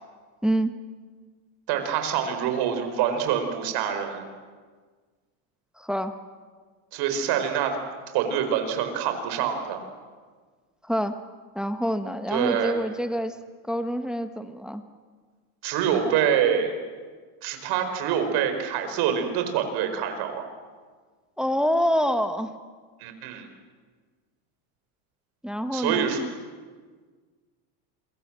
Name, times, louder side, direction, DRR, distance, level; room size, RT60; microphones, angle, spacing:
voice 1, 1.7-4.3 6.9-7.8 8.1-9.8 12.3-12.8 15.6-16.7 17.4-20.5 23.0-23.5 25.7-26.2, right 8 dB, 60° right, 6 dB, 4.9 m, -25 dB
voice 2, 5.8-6.1 10.8-11.2 11.5-13.4 13.7-14.8 21.4-22.5 25.4-26.3, equal, ahead, 8 dB, 1.3 m, -26 dB
27.5 x 22.5 x 7.6 m, 1.5 s
supercardioid pair, 110°, 43 cm